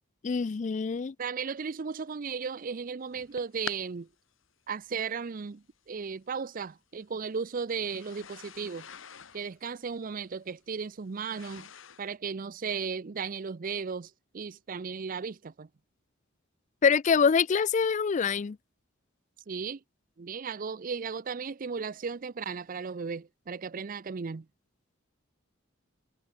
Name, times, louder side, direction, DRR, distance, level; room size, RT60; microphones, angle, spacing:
voice 1, 0.2-1.1 16.8-18.6, left 6 dB, 35° left, 0.4 m, -25 dB
voice 2, 1.2-4.1 4.7-8.9 9.3-11.7 12.0-15.7 19.5-19.8 20.2-24.5, right 5 dB, 40° right, 0.5 m, -35 dB
sound 1, 3.1-3.8 4.8-4.9 6.1-6.2 7.8-12.1, left 7 dB, 70° left, 1.5 m, -45 dB
head